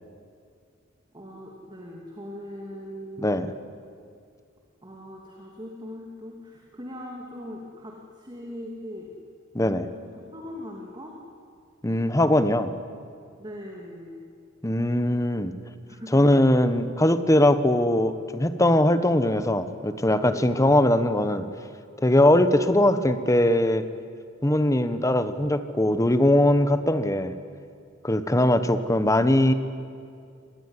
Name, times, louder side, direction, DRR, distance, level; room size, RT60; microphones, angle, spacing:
voice 1, 1.1-3.4 4.8-9.1 10.1-11.2 13.4-14.3 15.9-16.1 20.2-21.0, equal, 20° right, -1 dB, 2.6 m, -41 dB
voice 2, 9.5-9.9 11.8-12.7 14.6-15.5 16.1-21.4 22.0-23.8 24.4-27.3 28.0-29.5, left 1 dB, 15° left, 11 dB, 1.1 m, -21 dB
25.5 x 19.5 x 9.8 m, 2.3 s
head